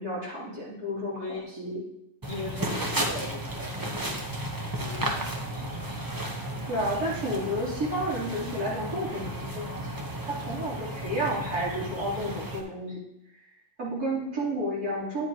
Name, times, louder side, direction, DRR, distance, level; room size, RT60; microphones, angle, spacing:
voice 1, 0.0-1.8 6.7-13.0 13.8-15.3, equal, 70° right, -7 dB, 3.9 m, -31 dB
voice 2, 1.1-1.5 2.3-4.3 4.8-5.8, left 2 dB, 40° left, -3 dB, 2.0 m, -39 dB
sound 1, 2.2-12.6, right 1 dB, 20° right, 0.7 m, -34 dB
10.5 x 8.0 x 2.9 m, 0.82 s
omnidirectional pair, 1.7 m